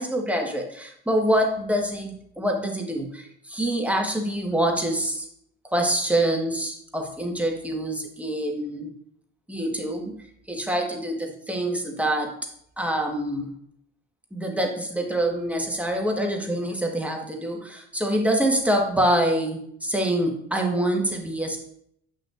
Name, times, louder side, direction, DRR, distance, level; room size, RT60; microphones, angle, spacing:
voice 1, 0.0-5.3 5.7-8.9 9.5-10.1 10.5-12.3 12.8-13.5 14.3-21.6, right 1 dB, 5° right, 1 dB, 1.5 m, -25 dB
8.7 x 5.7 x 2.6 m, 0.70 s
hypercardioid pair, 60°, 38 cm